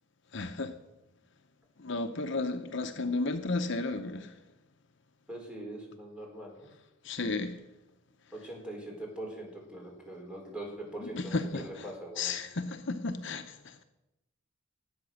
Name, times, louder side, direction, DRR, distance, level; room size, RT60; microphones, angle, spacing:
voice 1, 0.3-0.7 1.8-4.3 7.0-7.6 11.1-11.9 12.2-13.8, left 3 dB, 55° left, 7 dB, 0.8 m, -33 dB
voice 2, 5.3-6.7 8.3-12.4, right 1 dB, 5° right, -1 dB, 4.4 m, -42 dB
19.0 x 8.8 x 6.4 m, 0.93 s
head